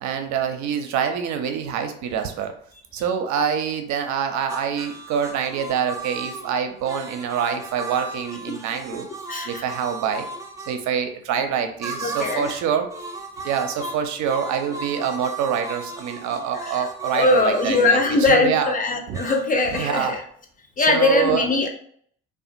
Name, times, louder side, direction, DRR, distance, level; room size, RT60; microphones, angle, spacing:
voice 1, 0.0-2.5 2.9-9.1 9.4-10.2 10.7-12.9 13.4-18.0 18.3-18.7 19.1-19.2 19.7-20.1 20.9-21.5, right 7 dB, 65° right, 6 dB, 0.6 m, -25 dB
sound 1, 4.5-10.8 11.8-12.6 12.9-18.3 19.1-19.9, right 3 dB, 10° right, 0.7 m, -36 dB
voice 2, 9.3-9.6 12.0-12.6 16.6-16.9 17.1-20.2 20.8-21.7, left 3 dB, 25° left, 3 dB, 0.7 m, -21 dB
2.7 x 2.4 x 2.5 m, 0.62 s
supercardioid pair, 65°, 32 cm